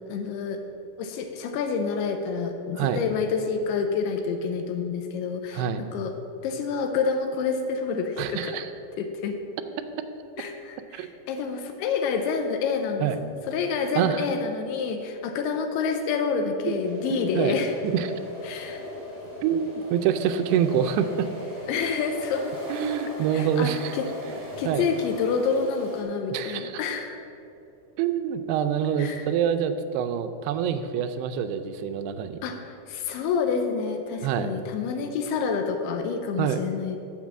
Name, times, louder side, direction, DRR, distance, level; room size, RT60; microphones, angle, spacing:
voice 1, 0.1-0.6 1.0-5.7 5.9-6.1 6.4-8.6 9.0-9.4 10.4-17.7 18.4-18.8 21.7-22.5 23.3-27.2 29.0-29.3 32.4-37.0, left 5 dB, 80° left, 5 dB, 2.5 m, -28 dB
voice 2, 8.2-8.7 10.9-11.1 13.0-13.2 14.0-14.3 16.7-16.8 17.1-17.6 17.8-18.1 19.4-21.3 22.7-24.0 24.7-24.9 26.3-26.8 28.0-32.4 34.2-34.5 36.4-36.6, right 8 dB, 85° right, 9 dB, 2.4 m, -26 dB
sound 1, 16.8-26.0, left 1 dB, 10° right, 0.8 m, -38 dB
7.1 x 6.6 x 7.4 m, 2.8 s
omnidirectional pair, 4.9 m